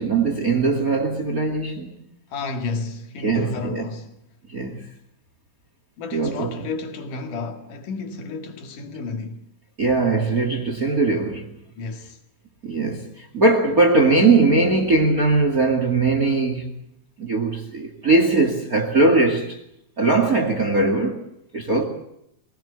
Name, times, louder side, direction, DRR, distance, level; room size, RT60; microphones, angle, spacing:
voice 1, 0.0-2.0 3.2-3.9 4.5-4.8 6.1-6.5 9.8-11.4 12.6-16.8 17.2-19.6 20.0-21.2 21.5-21.8, right 3 dB, 30° right, 2.1 m, -20 dB
voice 2, 2.3-4.1 6.0-9.4 11.8-12.2, left 4 dB, 60° left, 3.6 m, -31 dB
23.5 x 18.0 x 8.1 m
omnidirectional pair, 4.5 m